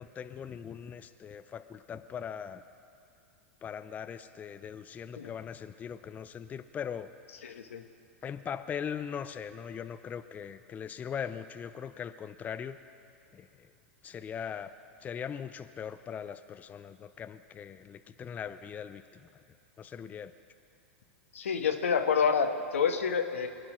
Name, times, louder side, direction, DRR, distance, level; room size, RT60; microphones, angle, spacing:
voice 1, 0.0-2.6 3.6-7.1 8.2-12.8 13.3-13.5 14.0-14.7 15.0-19.4 19.8-20.3, left 8 dB, 20° left, 11 dB, 0.5 m, -40 dB
voice 2, 7.4-7.8 21.3-23.5, left 6 dB, 80° left, 6 dB, 1.3 m, -28 dB
23.5 x 9.7 x 6.2 m, 2.5 s
hypercardioid pair, 105°, 7 cm